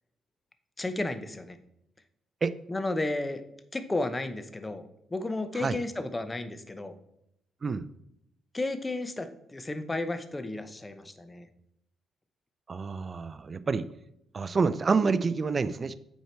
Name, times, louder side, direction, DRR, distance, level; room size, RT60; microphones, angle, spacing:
voice 1, 0.8-1.6 2.7-3.4 3.7-7.0 8.5-11.5, left 2 dB, 20° left, 10 dB, 0.7 m, -33 dB
voice 2, 12.7-13.9 14.3-15.9, right 4 dB, 35° right, 13 dB, 0.4 m, -27 dB
8.1 x 4.6 x 4.5 m, 0.79 s
cardioid pair, 90°, 0 cm